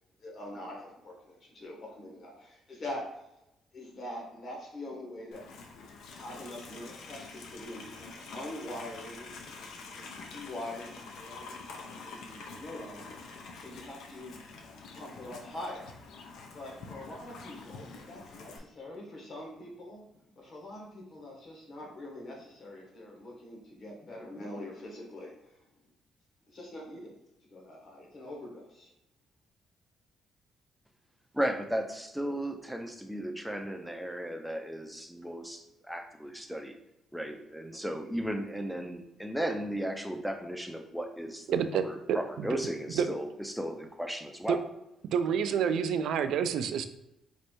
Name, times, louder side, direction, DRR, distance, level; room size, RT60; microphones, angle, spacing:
voice 1, 0.2-3.3 3.7-5.4 6.1-16.0 16.5-25.7 26.5-28.9, left 1 dB, 40° left, -2 dB, 1.2 m, -44 dB
Livestock farm animals working animals, 5.3-18.6, left 4 dB, 75° left, 0.6 m, -47 dB
voice 2, 31.3-36.7 37.1-41.5 41.8-44.6, equal, ahead, 4 dB, 0.4 m, -35 dB
voice 3, 41.5-42.6 42.9-43.1 44.5-44.6 45.1-46.9, right 7 dB, 70° right, 9 dB, 0.3 m, -28 dB
3.2 x 2.6 x 4.4 m, 0.88 s
cardioid pair, 160°, 0 cm